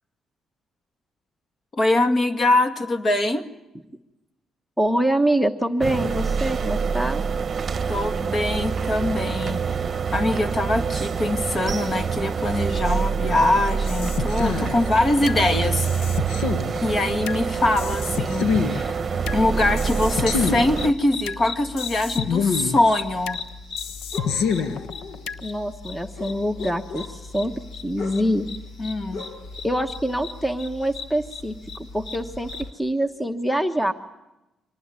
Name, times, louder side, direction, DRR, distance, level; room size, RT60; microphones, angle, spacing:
voice 1, 1.7-3.4 7.9-9.8 10.1-15.9 16.8-23.4 28.8-29.2, left 2 dB, 40° left, 7 dB, 2.1 m, -23 dB
voice 2, 4.8-7.2 25.4-28.5 29.6-31.6 31.9-33.9, right 1 dB, 5° left, 7 dB, 1.2 m, -25 dB
sound 1, 5.8-20.9, right 6 dB, 40° right, 0.9 m, -26 dB
sound 2, 13.9-15.4 15.8-17.4 17.8-19.4 19.8-21.4 21.8-23.4 23.8-25.4, left 6 dB, 85° left, 1.2 m, -27 dB
sound 3, 20.5-32.7, left 4 dB, 65° left, 4.1 m, -37 dB
25.5 x 19.5 x 9.7 m, 0.98 s
cardioid pair, 90°, 0 cm